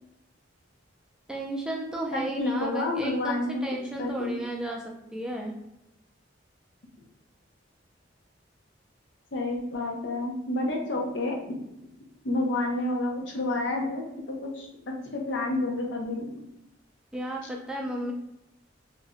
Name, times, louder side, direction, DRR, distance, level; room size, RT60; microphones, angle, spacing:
voice 1, 1.3-4.8 5.1-5.5 17.1-18.1, right 1 dB, 5° right, -1 dB, 0.4 m, -33 dB
voice 2, 2.1-3.6 4.0-4.4 9.3-11.7 12.2-14.7 15.1-16.3, left 2 dB, 70° left, 1 dB, 0.7 m, -29 dB
2.5 x 2.1 x 3.5 m, 0.87 s
head